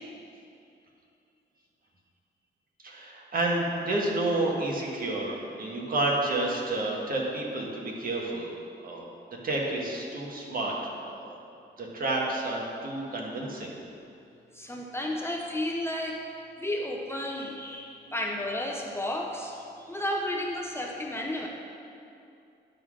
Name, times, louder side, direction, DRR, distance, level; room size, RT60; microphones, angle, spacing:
voice 1, 2.8-8.5 8.8-9.1 9.4-11.4 11.8-13.7, right 2 dB, 50° right, -2 dB, 1.5 m, -30 dB
voice 2, 14.5-16.2 16.6-21.5, left 1 dB, 15° left, -1 dB, 0.7 m, -32 dB
10.5 x 3.9 x 6.2 m, 2.6 s
cardioid pair, 120°, 19 cm